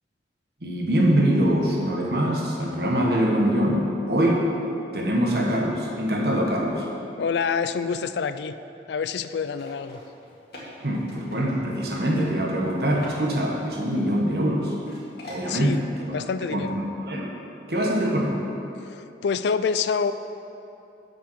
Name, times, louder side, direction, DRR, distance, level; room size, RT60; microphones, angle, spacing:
voice 1, 0.6-4.5 4.9-6.8 10.8-14.7 15.3-16.2 16.4-16.7 17.0-17.3 17.7-18.4, equal, 60° right, -1 dB, 1.4 m, -23 dB
voice 2, 7.2-8.5 8.9-10.0 15.5-15.8 16.1-16.8 18.8-20.1, left 5 dB, 75° left, 12 dB, 0.4 m, -27 dB
sound 1, 9.5-11.8 12.2-12.3 12.6-13.2 13.4-14.5 14.8-15.5, left 1 dB, 60° left, 2.1 m, -45 dB
7.6 x 6.8 x 6.3 m, 2.9 s
head